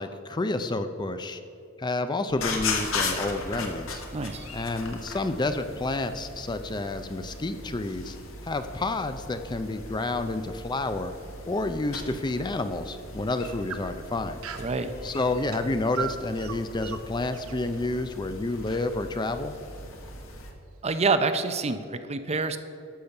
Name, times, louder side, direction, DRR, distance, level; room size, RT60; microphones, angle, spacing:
voice 1, 0.0-1.4 1.8-4.0 4.5-8.2 8.4-11.1 11.5-14.4 15.0-19.5, left 2 dB, 20° left, 9 dB, 0.5 m, -29 dB
sound 1, 2.3-20.5, left 3 dB, 70° left, 1.5 m, -38 dB
voice 2, 4.1-4.5 14.6-14.9 20.8-22.6, right 4 dB, 30° right, 9 dB, 0.6 m, -27 dB
sound 2, 10.0-12.1 12.6-12.7 13.3-14.8 15.3-19.6, right 8 dB, 85° right, 0.8 m, -41 dB
12.0 x 6.9 x 5.8 m, 2.7 s
head